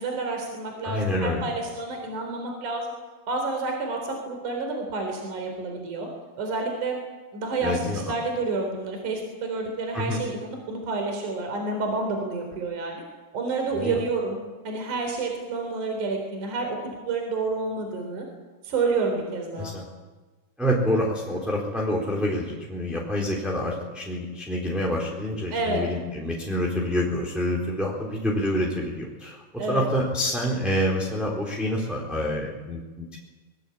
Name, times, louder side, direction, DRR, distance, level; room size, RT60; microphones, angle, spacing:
voice 1, 0.0-3.0 3.3-6.1 6.4-7.0 7.3-13.0 13.3-14.4 14.6-18.3 18.6-19.7 25.5-25.8 29.6-29.9, right 3 dB, 55° right, 3 dB, 5.1 m, -29 dB
voice 2, 0.8-1.4 7.6-8.0 9.9-10.2 13.7-14.0 19.6-19.8 20.6-33.2, left 1 dB, ahead, -4 dB, 3.5 m, -27 dB
24.0 x 21.5 x 8.6 m, 1.3 s
omnidirectional pair, 4.4 m